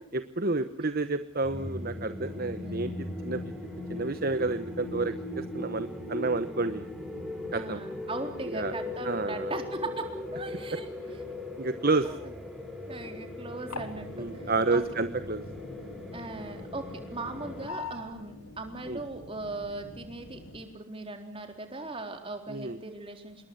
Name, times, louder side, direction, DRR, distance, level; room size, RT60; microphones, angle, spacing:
voice 1, 0.1-3.5 3.9-6.9 7.5-7.8 8.5-8.7 9.0-9.5 11.6-12.1 14.2-15.4 18.9-19.0 22.5-22.8, right 3 dB, 45° right, 11 dB, 1.1 m, -30 dB
sound 1, 1.4-17.7, left 1 dB, ahead, 6.5 m, -39 dB
voice 2, 7.5-10.0 10.3-11.2 12.0-12.3 12.9-14.8 16.1-23.5, right 2 dB, 25° right, 5 dB, 4.1 m, -39 dB
sound 2, 13.7-20.6, left 3 dB, 90° left, 3.8 m, -45 dB
27.5 x 22.0 x 8.0 m, 0.63 s
head